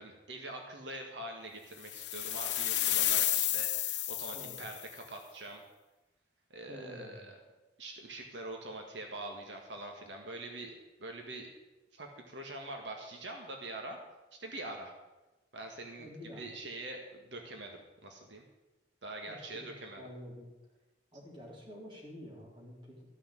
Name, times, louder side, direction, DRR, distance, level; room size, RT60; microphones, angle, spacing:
voice 1, 0.0-5.6 6.5-7.4 7.8-11.5 11.9-14.0 14.4-14.9 15.5-16.1 16.4-18.4 19.0-20.0, right 2 dB, 85° right, 2 dB, 1.7 m, -44 dB
sound 1, 1.9-4.9, left 13 dB, 70° left, 0.8 m, -31 dB
voice 2, 4.3-4.7 6.7-7.3 16.0-16.4 19.3-20.5 21.1-23.0, equal, 30° right, -3 dB, 4.1 m, -48 dB
14.5 x 6.1 x 9.0 m, 1.1 s
head